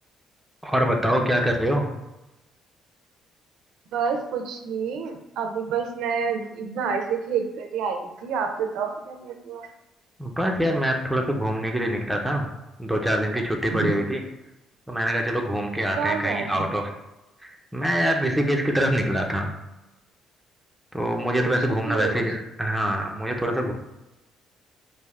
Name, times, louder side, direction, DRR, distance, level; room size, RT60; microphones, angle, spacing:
voice 1, 0.6-1.9 10.2-12.5 12.8-14.2 14.9-16.9 17.4-19.5 20.9-23.7, equal, ahead, 1 dB, 0.4 m, -24 dB
voice 2, 3.9-9.7 13.7-13.9 16.0-16.7 21.4-22.2, right 6 dB, 80° right, 5 dB, 0.4 m, -28 dB
3.3 x 2.4 x 2.4 m, 0.97 s
cardioid pair, 125°, 0 cm